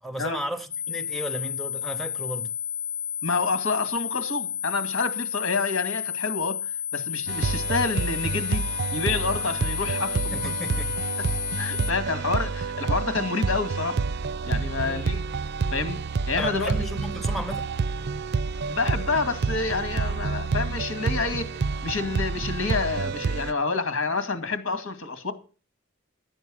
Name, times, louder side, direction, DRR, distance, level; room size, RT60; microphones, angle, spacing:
voice 1, 0.0-2.5 10.3-10.9 14.8-15.1 16.4-17.7, equal, ahead, 0.8 m, -34 dB
sound 1, 0.7-11.9, left 8 dB, 35° left, 0.6 m, -32 dB
voice 2, 3.2-6.6 6.9-10.7 11.6-14.0 14.4-15.2 15.7-16.0 16.3-16.9 18.7-21.5 21.8-25.3, left 4 dB, 80° left, 2.2 m, -28 dB
sound 2, 7.3-23.5, right 4 dB, 55° right, 0.5 m, -28 dB
12.0 x 8.2 x 6.2 m
head